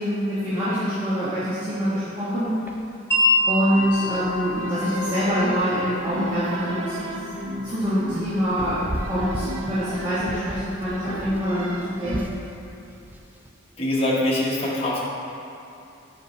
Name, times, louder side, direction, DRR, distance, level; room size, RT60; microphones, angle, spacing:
voice 1, 0.0-2.5 3.5-7.1 7.6-12.2, equal, 25° right, -13 dB, 1.3 m, -25 dB
sound 1, 2.3-13.5, equal, 10° right, 0.3 m, -38 dB
Wind chime, 3.1-9.2, left 1 dB, 15° left, 0.9 m, -28 dB
sound 2, 3.7-12.3, right 1 dB, 90° right, 0.5 m, -34 dB
voice 2, 13.8-15.0, left 1 dB, 30° left, -6 dB, 1.2 m, -23 dB
7.7 x 5.2 x 3.2 m, 2.8 s
head